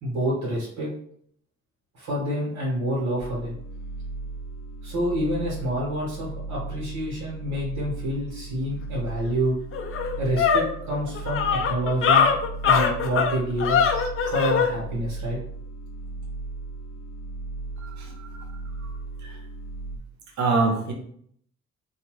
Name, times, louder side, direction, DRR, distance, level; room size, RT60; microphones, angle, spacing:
voice 1, 0.0-0.9 1.9-3.5 4.8-9.5 10.2-12.3 12.6-15.4, equal, 85° right, -6 dB, 1.4 m, -28 dB
sound 1, 3.2-20.0, right 3 dB, 90° left, 0.7 m, -36 dB
sound 2, 9.2-9.3 9.7-14.7, left 6 dB, 45° left, 0.5 m, -22 dB
voice 2, 17.8-18.4 18.8-18.9 19.2-19.3 20.4-20.9, right 3 dB, 65° right, 1 dB, 0.8 m, -25 dB
2.7 x 2.3 x 3.1 m, 0.65 s
cardioid pair, 90°, 30 cm